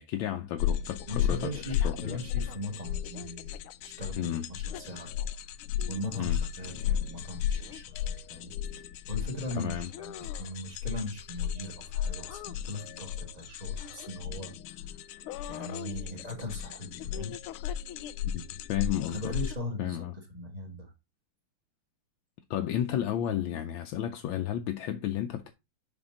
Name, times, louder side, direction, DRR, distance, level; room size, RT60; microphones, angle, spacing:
voice 1, 0.0-2.2 4.1-4.5 6.2-6.4 9.5-9.9 18.3-19.3 19.8-20.2 22.5-25.5, left 11 dB, 75° left, 1.3 m, -33 dB
sound 1, 0.6-19.6, left 9 dB, 90° left, 1.5 m, -34 dB
voice 2, 1.1-3.5 3.8-5.4 5.9-8.5 9.1-14.8 15.5-17.3 19.1-20.0 20.3-20.9, left 1 dB, 20° right, 1.7 m, -39 dB
7.0 x 5.0 x 3.8 m
omnidirectional pair, 2.4 m